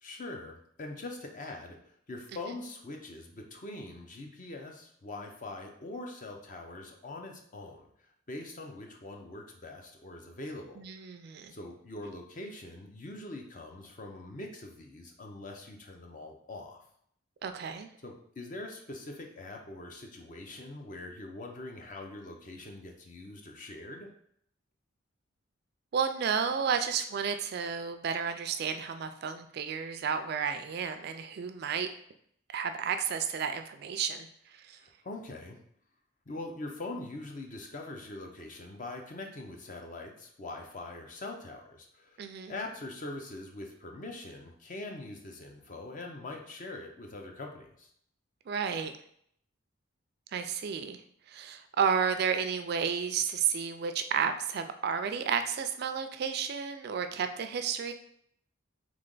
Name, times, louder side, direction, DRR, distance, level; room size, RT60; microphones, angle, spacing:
voice 1, 0.0-7.9 8.3-10.8 11.5-16.8 18.0-24.1 34.8-35.6 36.3-47.9, left 2 dB, 40° left, 2 dB, 0.6 m, -43 dB
voice 2, 10.8-11.5 17.4-17.9 25.9-31.9 32.5-34.3 42.2-42.5 48.5-48.9 50.3-51.0 51.3-57.9, right 7 dB, 50° right, 8 dB, 0.3 m, -32 dB
3.6 x 3.3 x 3.8 m, 0.68 s
head